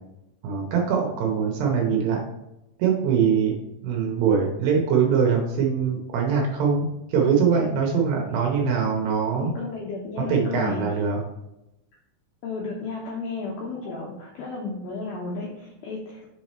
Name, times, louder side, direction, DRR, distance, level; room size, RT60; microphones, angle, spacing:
voice 1, 0.4-2.2 2.8-3.5 3.8-9.5 10.3-11.2, right 6 dB, 75° right, 0 dB, 2.7 m, -22 dB
voice 2, 9.4-10.8 12.4-16.2, left 4 dB, 80° left, -3 dB, 2.2 m, -33 dB
6.6 x 4.8 x 4.2 m, 0.90 s
omnidirectional pair, 5.5 m